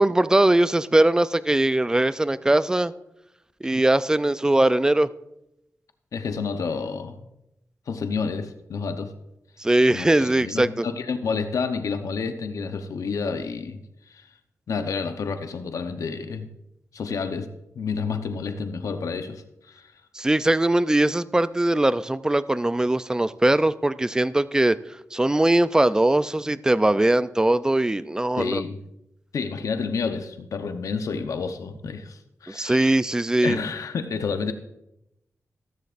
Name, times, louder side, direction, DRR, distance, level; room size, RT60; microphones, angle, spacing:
voice 1, 0.0-2.9 3.6-5.1 9.6-10.9 20.2-24.8 25.1-28.6 32.5-33.6, right 1 dB, 10° right, 0.3 m, -21 dB
voice 2, 6.1-7.2 7.9-9.1 9.9-13.8 14.1-14.3 14.7-16.5 16.9-17.5 17.8-19.9 28.4-28.8 29.3-33.0 33.4-34.5, left 5 dB, 75° left, 0.8 m, -29 dB
14.5 x 14.0 x 2.5 m
wide cardioid pair, 130°, 6 cm